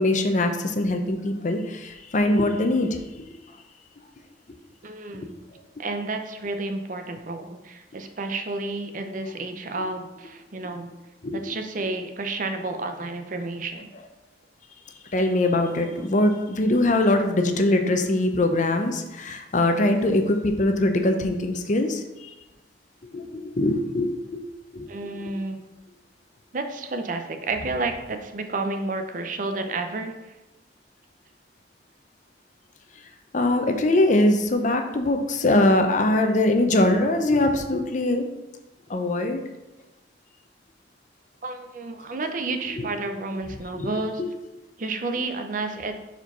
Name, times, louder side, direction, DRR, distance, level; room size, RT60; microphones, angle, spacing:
voice 1, 0.0-3.0 5.2-5.3 11.2-11.4 15.1-22.3 23.1-24.4 24.7-24.9 33.3-38.3 38.9-39.4 43.7-43.9, left 1 dB, 45° left, 5 dB, 0.6 m, -22 dB
voice 2, 4.8-5.4 5.8-10.9 11.3-13.9 24.9-25.6 26.5-30.3 41.4-44.2 44.8-46.0, right 3 dB, 45° right, 6 dB, 0.6 m, -31 dB
4.8 x 4.5 x 5.4 m, 1.0 s
head